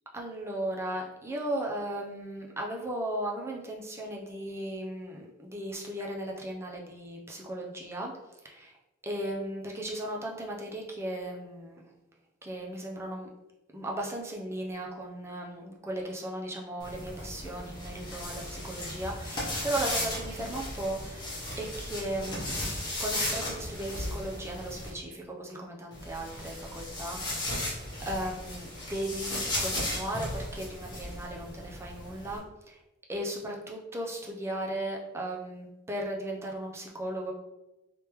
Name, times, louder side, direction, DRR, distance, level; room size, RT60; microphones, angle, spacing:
voice 1, 0.1-8.2 8.4-8.8 9.0-11.8 12.4-13.3 13.7-22.6 23.0-32.8 33.1-37.3, right 1 dB, 15° right, -1 dB, 0.5 m, -36 dB
sound 1, 16.8-24.9 25.9-32.4, left 1 dB, 20° left, 1.0 m, -36 dB
3.3 x 3.3 x 3.0 m, 0.99 s
head